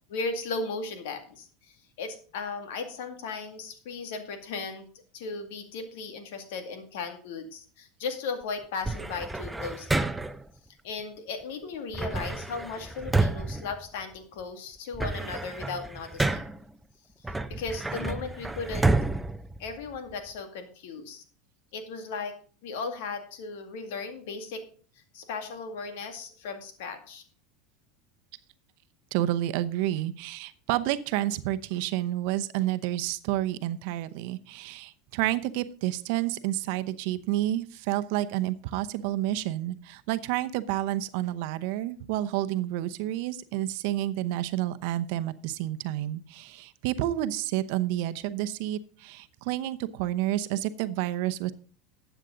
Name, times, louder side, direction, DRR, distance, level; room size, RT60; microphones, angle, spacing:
voice 1, 0.1-4.9 5.1-10.1 10.8-16.4 17.5-18.9 19.6-21.2 21.7-22.3 22.6-24.6 25.1-27.2, left 4 dB, 80° left, 7 dB, 2.1 m, -36 dB
sound 1, 8.8-10.5 11.9-14.4 14.8-16.7 17.2-20.3, right 2 dB, 10° right, 0.6 m, -30 dB
voice 2, 29.1-51.5, right 14 dB, 70° right, 12 dB, 0.8 m, -30 dB
12.5 x 8.1 x 3.9 m, 0.41 s
supercardioid pair, 120°, 0 cm